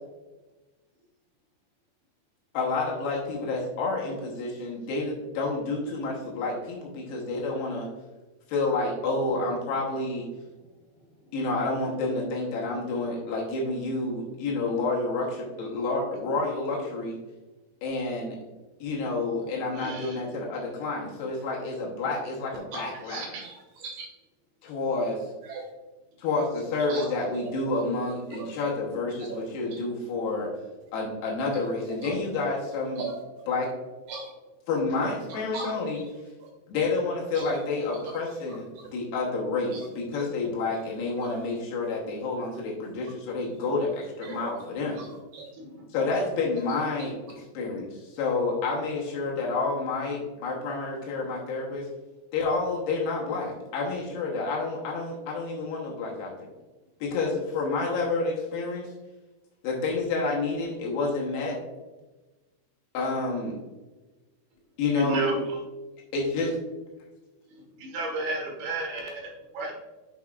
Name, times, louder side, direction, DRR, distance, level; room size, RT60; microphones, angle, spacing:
voice 1, 2.5-7.9 8.5-10.3 11.3-17.2 17.8-18.4 18.8-23.3 24.6-25.3 26.2-30.5 30.9-33.0 33.5-33.7 34.7-36.0 36.7-38.6 38.9-45.0 45.9-47.1 47.5-51.9 52.3-56.5 57.0-58.9 59.6-61.6 62.9-63.6 64.8-65.4 66.1-66.5, left 3 dB, 85° left, -3 dB, 3.2 m, -29 dB
voice 2, 19.7-20.2 23.1-23.4 45.5-45.7 64.9-65.6 67.5-69.7, right 2 dB, 70° right, 0 dB, 3.3 m, -34 dB
voice 3, 22.7-24.1 25.4-25.6 26.8-27.8 28.3-28.5 29.1-29.8 31.9-32.2 33.0-33.2 34.1-34.3 35.3-36.0 36.4-36.5 37.3-37.6 38.0-38.9 39.7-39.9 40.1-40.3 40.8-40.9 41.2-41.4 41.8-42.0 42.5-42.6 44.2-44.5 45.0-45.5 46.7-47.1, right 4 dB, 90° right, 1 dB, 2.0 m, -40 dB
8.4 x 5.8 x 2.4 m, 1.2 s
omnidirectional pair, 4.6 m